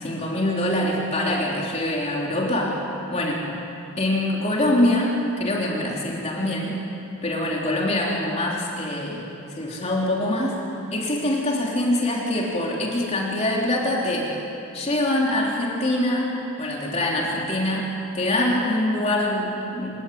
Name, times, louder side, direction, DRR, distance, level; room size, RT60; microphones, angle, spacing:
voice 1, 0.0-2.8 3.1-3.5 4.0-6.8 7.2-9.3 9.5-10.6 10.9-14.3 14.7-20.0, left 1 dB, 30° left, -2 dB, 3.5 m, -24 dB
28.5 x 18.0 x 9.4 m, 2.9 s
head